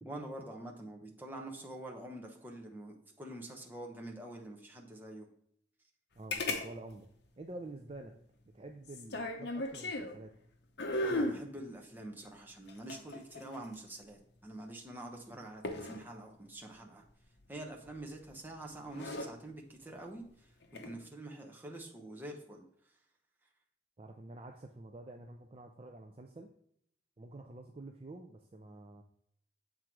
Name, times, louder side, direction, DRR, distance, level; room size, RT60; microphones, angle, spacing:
voice 1, 0.0-5.3 11.0-17.0 17.5-22.6, right 1 dB, 10° right, 0 dB, 0.9 m, -46 dB
voice 2, 6.2-7.1 7.4-8.1 8.5-10.3 24.0-26.5 27.2-29.0, right 2 dB, 30° right, 3 dB, 0.4 m, -48 dB
sound 1, 6.3-6.7 6.9-7.0 8.9-10.2 10.8-11.4 12.7-13.9 15.6-16.0 17.9-18.2 18.8-19.3 20.6-20.9, left 1 dB, 65° left, 0.8 m, -36 dB
7.5 x 3.8 x 4.6 m, 0.67 s
head